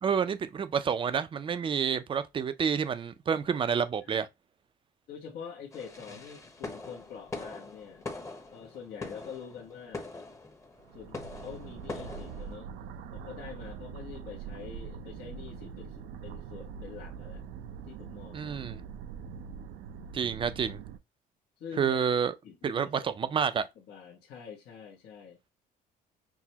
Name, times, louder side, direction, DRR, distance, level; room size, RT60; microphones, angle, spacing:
voice 1, 0.0-4.3 18.3-18.8 20.1-20.8 21.8-22.3 22.6-23.7, right 7 dB, 30° right, 0.5 m, -29 dB
voice 2, 5.1-8.1 8.5-10.1 10.9-12.7 13.1-17.5 17.8-18.5 21.6-22.0 22.4-23.4 23.8-25.4, left 7 dB, 70° left, 1.0 m, -46 dB
sound 1, 5.7-12.6, left 3 dB, 20° left, 0.9 m, -43 dB
sound 2, 10.8-21.0, right 7 dB, 80° right, 0.5 m, -43 dB
6.0 x 2.1 x 2.8 m
cardioid pair, 110°, 17 cm